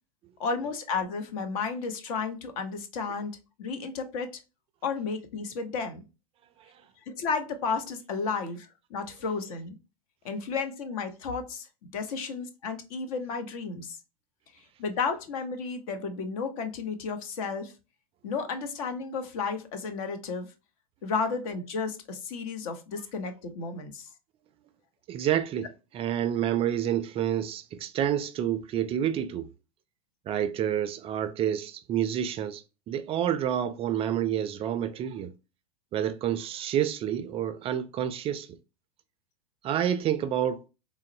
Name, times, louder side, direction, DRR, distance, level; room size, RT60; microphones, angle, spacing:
voice 1, 0.4-4.4 4.8-6.0 7.1-9.8 10.2-14.0 14.8-17.7 18.2-20.5 21.0-24.1, left 5 dB, 65° left, 0.8 m, -33 dB
voice 2, 25.1-25.7 25.9-29.5 30.3-35.3 35.9-38.5 39.6-40.6, right 10 dB, 30° right, 0.3 m, -28 dB
3.7 x 2.0 x 2.6 m
hypercardioid pair, 95°, 20 cm